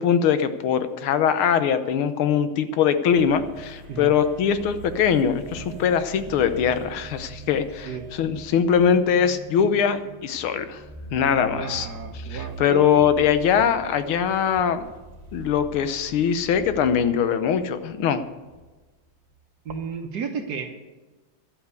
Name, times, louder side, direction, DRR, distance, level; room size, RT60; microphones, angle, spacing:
voice 1, 0.0-7.9 8.2-10.8 11.1-11.9 12.3-14.8 15.3-18.2, left 8 dB, 85° left, 10 dB, 1.8 m, -22 dB
sound 1, 3.1-18.6 19.1-19.3, right 4 dB, 20° right, 1.4 m, -41 dB
voice 2, 11.3-13.1 19.6-20.7, right 5 dB, 55° right, 5 dB, 1.5 m, -33 dB
12.0 x 8.1 x 8.1 m, 1.2 s
omnidirectional pair, 2.3 m